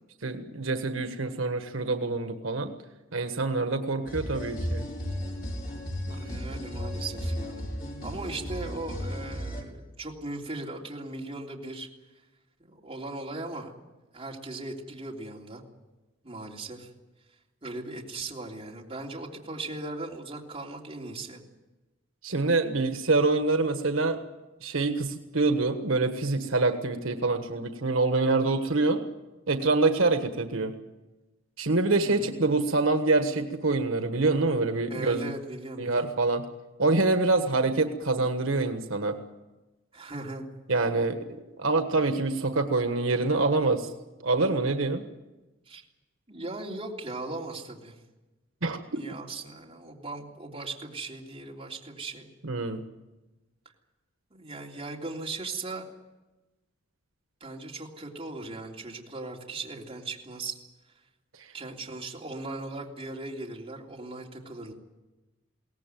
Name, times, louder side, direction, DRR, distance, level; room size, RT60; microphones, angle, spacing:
voice 1, 0.2-2.7 3.1-4.9 22.2-24.2 24.6-29.1 29.5-30.7 31.6-35.3 35.8-36.4 36.8-39.2 40.7-41.2 41.6-43.9 44.2-45.0 48.6-48.8 52.4-52.8, right 3 dB, 80° right, 7 dB, 1.4 m, -25 dB
sound 1, 4.1-9.6, equal, 45° left, 4.7 m, -34 dB
voice 2, 6.1-7.7 8.0-11.9 12.6-13.7 14.1-15.6 16.2-16.9 17.6-21.4 32.0-32.3 34.9-36.1 39.9-40.4 45.7-45.8 46.3-47.9 48.8-52.3 54.3-55.9 57.4-60.6 61.5-64.7, right 2 dB, 30° right, -1 dB, 3.3 m, -38 dB
22.5 x 18.0 x 9.2 m, 1.1 s
head